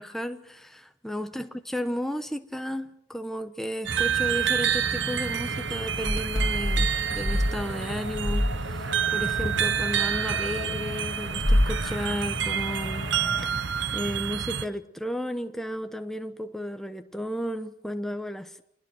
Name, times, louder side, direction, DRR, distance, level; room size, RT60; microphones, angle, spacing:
voice 1, 0.0-13.1 13.4-18.6, equal, ahead, 1.1 m, -33 dB
sound 1, 3.9-14.7, right 7 dB, 70° right, 0.9 m, -28 dB
sound 2, 4.3-13.5, left 1 dB, 40° left, 2.5 m, -30 dB
27.5 x 21.0 x 6.3 m
head